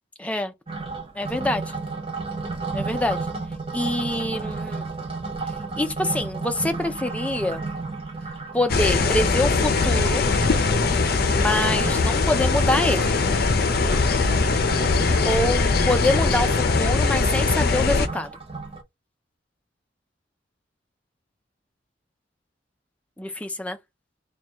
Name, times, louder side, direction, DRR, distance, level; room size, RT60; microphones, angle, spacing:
voice 1, 0.2-0.5 1.2-1.6 2.7-3.3 3.7-4.8 5.8-7.6 8.5-10.2 11.3-13.1 15.2-18.3 23.2-23.8, left 1 dB, 5° left, 0.4 m, -25 dB
sound 1, 0.7-18.8, right 3 dB, 30° right, 0.8 m, -33 dB
sound 2, 8.7-18.1, left 4 dB, 55° left, 0.6 m, -21 dB
3.5 x 2.3 x 4.3 m
head